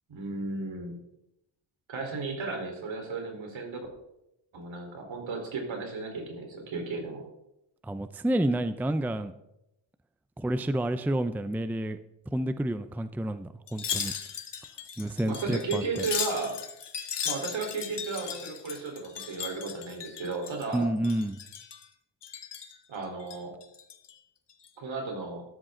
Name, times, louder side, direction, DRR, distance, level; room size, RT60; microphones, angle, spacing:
voice 1, 0.1-1.0 1.9-3.9 4.5-7.2 15.3-16.6 17.2-20.9 22.9-23.5 24.8-25.4, right 3 dB, 70° right, 2 dB, 4.3 m, -34 dB
voice 2, 7.8-9.3 10.4-12.0 12.3-14.1 15.0-16.1 20.7-21.4, right 1 dB, 5° right, 11 dB, 0.5 m, -29 dB
Wind chime, 13.7-20.8 21.0-21.9 22.2-22.8 23.2-24.1 24.5-24.7, left 7 dB, 55° left, 1.9 m, -37 dB
14.0 x 13.0 x 3.9 m, 0.85 s
cardioid pair, 125°, 48 cm